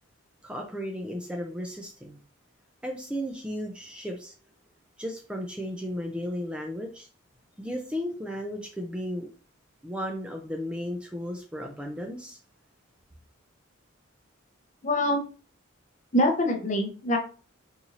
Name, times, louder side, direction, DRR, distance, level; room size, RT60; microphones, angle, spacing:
voice 1, 0.4-2.2 2.8-4.3 5.0-7.1 7.6-9.3 9.8-12.4, equal, 5° right, 2 dB, 0.4 m, -34 dB
voice 2, 14.8-15.2 16.1-17.2, left 1 dB, 35° left, 3 dB, 0.7 m, -24 dB
4.0 x 2.5 x 2.9 m, 0.37 s
head